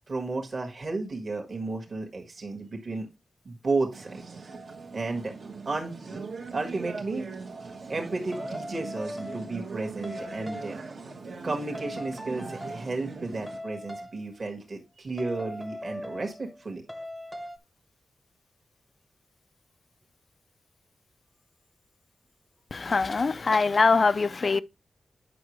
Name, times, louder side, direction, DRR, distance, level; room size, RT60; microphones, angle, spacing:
voice 1, 0.1-3.1 3.4-4.2 4.9-5.3 5.6-6.2 6.5-7.3 7.9-10.8 11.4-16.8, right 3 dB, 40° right, 1.5 m, -33 dB
sound 1, 3.9-13.6, right 4 dB, 55° right, 1.3 m, -40 dB
sound 2, 8.3-9.7 10.0-10.9 11.7-13.0 13.5-14.2 15.2-16.6 16.9-17.6, left 1 dB, 5° right, 0.9 m, -39 dB
voice 2, 22.7-24.6, left 4 dB, 35° left, 0.4 m, -23 dB
8.5 x 5.8 x 3.1 m
wide cardioid pair, 165°, 0 cm